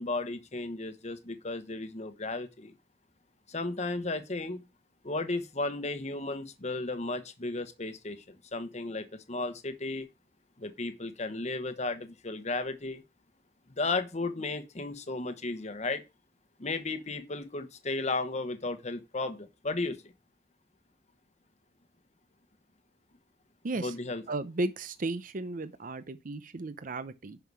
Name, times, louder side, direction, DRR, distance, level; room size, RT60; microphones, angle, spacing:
voice 1, 0.0-2.7 3.5-4.6 5.0-10.1 10.6-13.0 13.8-16.0 16.6-20.1 23.7-24.2, left 3 dB, 35° left, 1.1 m, -34 dB
voice 2, 23.6-23.9 24.3-27.4, right 2 dB, 45° right, 0.6 m, -34 dB
11.0 x 5.7 x 4.7 m
head